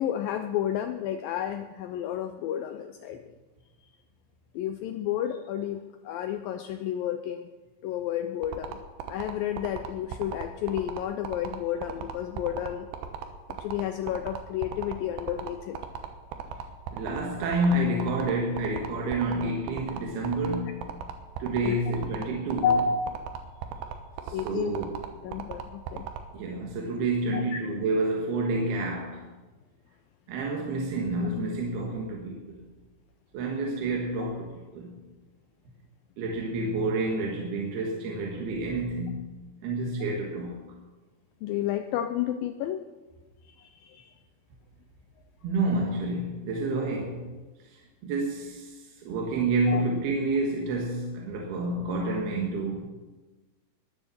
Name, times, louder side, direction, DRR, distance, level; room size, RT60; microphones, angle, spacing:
voice 1, 0.0-3.2 4.5-7.5 7.8-8.8 9.1-12.9 13.6-15.8 21.6-21.8 22.6-23.4 24.3-24.8 25.2-26.0 27.3-27.6 41.4-42.8 43.5-44.1 49.7-49.8, left 9 dB, 85° left, 8 dB, 2.0 m, -31 dB
sound 1, 8.4-26.2, right 9 dB, 90° right, 3.3 m, -36 dB
voice 2, 16.9-20.9 21.4-22.7 24.2-24.9 26.3-29.2 30.3-32.6 33.3-35.0 36.2-39.3 39.6-40.6 45.4-47.2 48.0-52.9, right 2 dB, 70° right, -1 dB, 3.5 m, -29 dB
21.0 x 7.1 x 7.1 m, 1.2 s
omnidirectional pair, 4.8 m